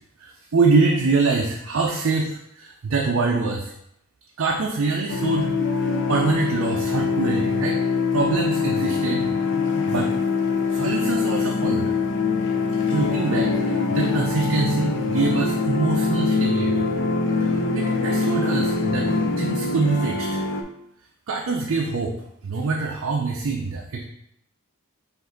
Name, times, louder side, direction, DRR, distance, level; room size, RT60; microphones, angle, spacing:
voice 1, 0.2-3.7 4.4-5.5 6.1-7.8 8.1-9.3 9.9-10.1 10.7-11.9 12.9-16.9 17.4-19.1 19.4-20.4 21.3-22.2 22.4-24.0, right 4 dB, 65° right, 0 dB, 0.5 m, -24 dB
sound 1, 5.1-20.6, left 4 dB, 55° left, 0.5 m, -23 dB
5.2 x 2.6 x 3.8 m, 0.75 s
head